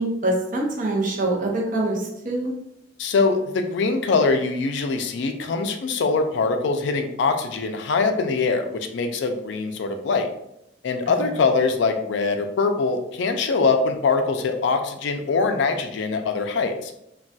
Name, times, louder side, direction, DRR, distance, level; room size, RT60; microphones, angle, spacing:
voice 1, 0.0-2.5 11.1-11.2, right 2 dB, 45° right, -1 dB, 0.7 m, -24 dB
voice 2, 3.0-10.3 10.8-16.9, left 4 dB, 65° left, 6 dB, 0.4 m, -23 dB
3.9 x 2.3 x 2.3 m, 0.80 s
head